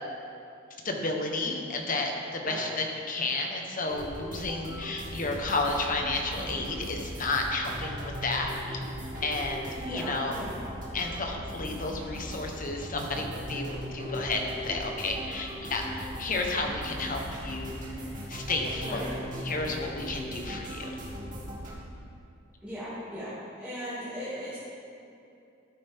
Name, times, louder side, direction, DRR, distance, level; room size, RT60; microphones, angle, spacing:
voice 1, 0.8-8.8 9.2-10.3 10.9-17.9 18.3-19.1 19.4-21.0, left 3 dB, 40° left, 2 dB, 1.2 m, -32 dB
sound 1, 3.9-21.7, equal, 40° right, 2.3 m, -39 dB
voice 2, 9.8-10.6 18.8-19.1 22.6-24.6, equal, 5° right, -12 dB, 2.4 m, -37 dB
13.5 x 9.2 x 3.6 m, 2.6 s
head